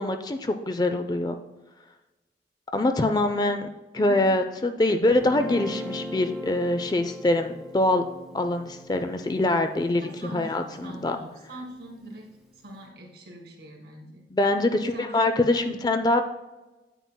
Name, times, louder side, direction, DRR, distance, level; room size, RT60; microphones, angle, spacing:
voice 1, 0.0-1.4 2.7-3.7 3.9-8.0 8.3-10.0 10.3-11.2 14.3-16.2, left 2 dB, 25° left, 7 dB, 0.4 m, -24 dB
voice 2, 3.0-3.5 4.0-4.2 4.6-5.0 10.0-12.2 12.6-14.2 14.9-15.1 15.6-15.9, equal, 70° right, 1 dB, 2.0 m, -42 dB
Guitar, 5.1-11.4, equal, ahead, 1.0 m, -40 dB
9.0 x 8.6 x 2.2 m, 1.1 s
head